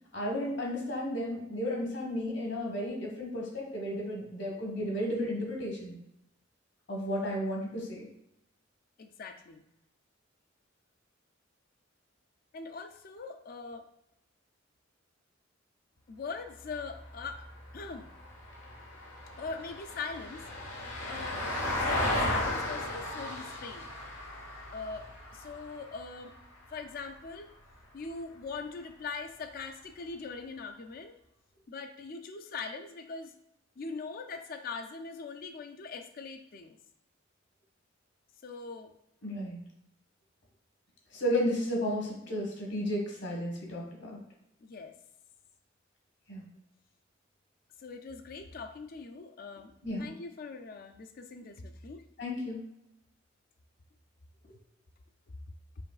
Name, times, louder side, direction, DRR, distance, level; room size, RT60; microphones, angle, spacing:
voice 1, 0.1-5.9 6.9-8.1 39.2-39.6 41.1-44.2 46.3-46.4 49.8-50.0 52.2-52.6, equal, 65° left, -1 dB, 1.2 m, -33 dB
voice 2, 9.0-9.7 12.5-13.8 16.1-17.5 17.7-18.1 19.4-20.4 21.0-23.9 24.7-26.3 26.7-27.5 27.9-31.1 31.7-33.3 33.8-36.8 38.4-38.9 44.6-44.9 47.8-49.7 50.0-52.0 54.4-54.6, left 4 dB, 50° left, 7 dB, 0.4 m, -41 dB
Vehicle, 16.6-27.1 29.4-29.5, left 1 dB, 85° left, 1.2 m, -36 dB
5.1 x 3.0 x 2.4 m, 0.82 s
head